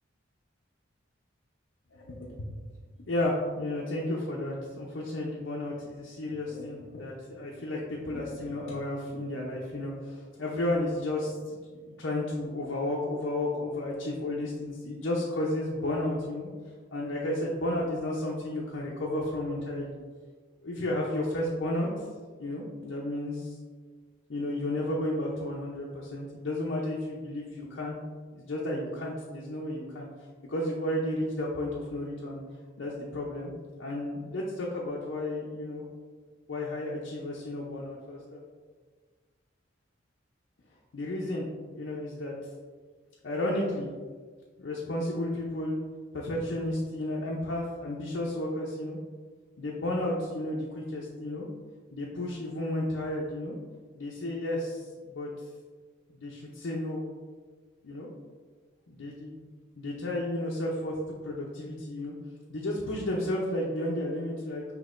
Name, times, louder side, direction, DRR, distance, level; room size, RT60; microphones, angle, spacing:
voice 1, 1.9-2.5 3.0-16.5 16.9-20.0 20.6-21.9 22.4-23.6 24.3-28.1 28.3-30.1 30.5-32.4 32.8-33.5 33.8-35.8 36.5-38.4 40.9-41.5 41.7-42.4 43.2-43.9 44.6-45.7 46.1-49.0 49.6-51.5 51.9-53.6 53.9-55.3 56.1-57.0 57.8-58.1 58.9-59.4 59.8-61.0 61.2-62.1 62.5-64.6, left 1 dB, 70° left, -4 dB, 0.6 m, -32 dB
6.0 x 2.9 x 2.5 m, 1.5 s
head